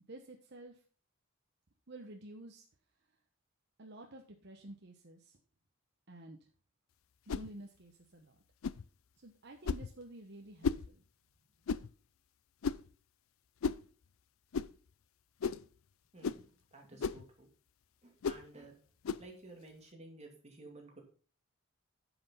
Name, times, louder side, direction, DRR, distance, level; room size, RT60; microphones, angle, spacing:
voice 1, 0.1-0.8 1.9-2.6 3.8-5.4 6.1-6.4 7.3-8.3 9.2-11.0, right 1 dB, 55° right, 2 dB, 1.1 m, -51 dB
sound 1, 7.3-7.5 8.6-8.8 9.6-9.9 10.6-10.9 11.7-11.9 12.6-12.9 13.6-13.8 14.5-14.7 15.4-15.7 16.2-16.4 17.0-17.2 18.2-18.4 19.0-19.3, left 5 dB, 75° left, 0.4 m, -35 dB
voice 2, 16.1-16.5 16.7-17.5 18.0-18.8 19.2-21.0, right 2 dB, 30° right, 1 dB, 2.6 m, -53 dB
10.0 x 6.1 x 5.4 m, 0.39 s
head